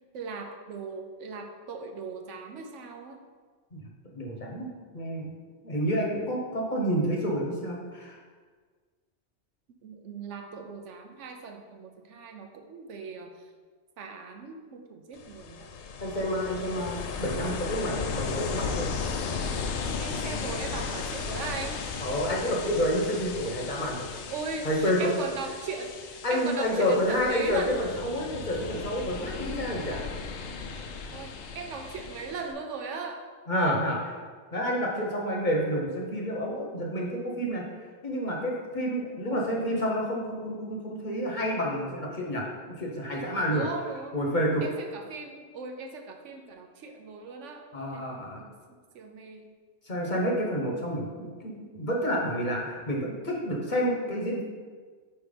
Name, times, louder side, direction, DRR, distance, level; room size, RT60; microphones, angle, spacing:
voice 1, 0.1-3.2 9.8-13.5 14.0-15.7 20.0-21.8 24.3-27.8 28.5-28.8 31.1-33.2 43.5-44.2 44.6-47.7 47.9-49.5, right 4 dB, 75° right, 3 dB, 1.0 m, -38 dB
voice 2, 4.1-5.4 5.6-8.2 16.0-18.9 22.0-24.1 24.6-25.1 26.2-30.0 33.5-34.2 34.5-37.7 38.0-43.7 44.1-44.6 47.7-48.4 49.8-54.4, equal, 40° left, -1 dB, 1.1 m, -29 dB
Ocean, 15.1-32.5, left 5 dB, 70° left, 0.9 m, -36 dB
5.7 x 4.4 x 5.1 m, 1.5 s
omnidirectional pair, 1.3 m